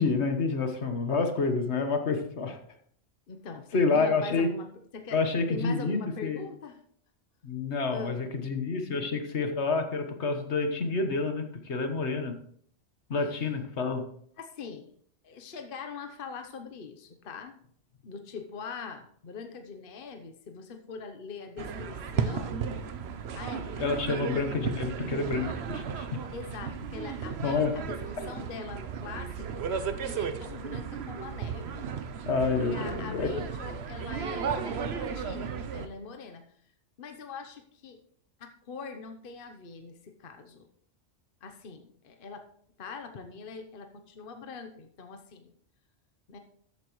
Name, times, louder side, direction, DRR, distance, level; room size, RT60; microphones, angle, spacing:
voice 1, 0.0-2.6 3.7-4.5 5.1-6.5 7.4-12.4 13.1-14.1 23.8-26.2 27.4-27.7 32.2-33.3, left 4 dB, 70° left, 6 dB, 1.5 m, -28 dB
voice 2, 3.3-4.7 4.9-5.2 5.5-6.8 7.9-8.2 13.2-13.5 14.4-14.9 15.2-17.6 18.0-22.7 23.3-24.3 26.3-31.9 32.5-36.4 37.0-38.0 38.4-40.7 41.4-42.5 42.8-45.5 46.3-46.4, left 5 dB, 50° left, 6 dB, 1.1 m, -42 dB
sound 1, 21.6-35.9, right 6 dB, 65° right, 1.0 m, -34 dB
13.5 x 9.0 x 3.1 m, 0.62 s
omnidirectional pair, 1.2 m